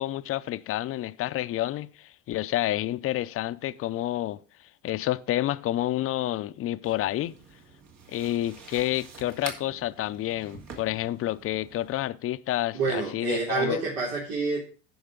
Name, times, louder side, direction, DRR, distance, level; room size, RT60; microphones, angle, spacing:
voice 1, 0.0-4.4 4.8-7.4 8.1-13.8, left 14 dB, 45° left, 0.6 m, -29 dB
sound 1, 6.8-12.0, right 5 dB, 60° right, 2.6 m, -46 dB
voice 2, 12.7-14.6, right 4 dB, 80° right, 3.8 m, -28 dB
15.0 x 5.5 x 3.8 m
supercardioid pair, 110°, 31 cm